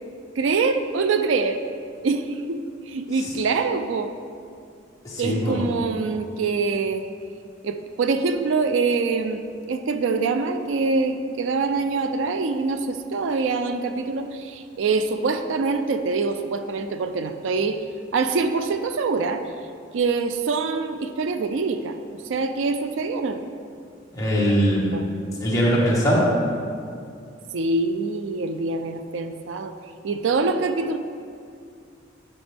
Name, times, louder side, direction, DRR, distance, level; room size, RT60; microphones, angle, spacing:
voice 1, 0.4-1.6 2.0-2.6 2.9-4.1 5.2-7.0 7.6-9.4 9.7-17.8 18.1-19.5 19.9-22.0 22.2-23.4 24.9-25.1 27.5-29.7 30.0-31.0, right 4 dB, 75° right, 8 dB, 0.4 m, -24 dB
voice 2, 5.0-5.6 24.1-24.9 25.4-26.3, equal, 20° left, -6 dB, 1.7 m, -21 dB
10.0 x 6.0 x 3.4 m, 2.4 s
head